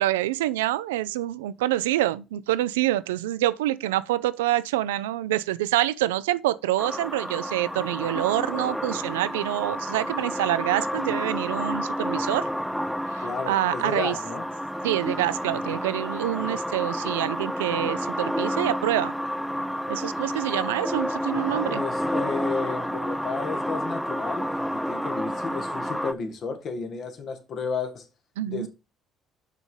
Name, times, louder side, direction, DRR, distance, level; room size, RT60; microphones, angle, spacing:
voice 1, 0.0-12.5 13.1-14.1 14.8-19.1 19.9-21.8 28.4-28.7, right 14 dB, 90° right, 0.3 m, -26 dB
sound 1, 6.8-26.1, equal, ahead, 0.4 m, -30 dB
voice 2, 13.2-14.5 21.7-28.1 28.5-28.7, left 5 dB, 55° left, 1.5 m, -32 dB
5.7 x 4.7 x 5.3 m
hypercardioid pair, 60°, 0 cm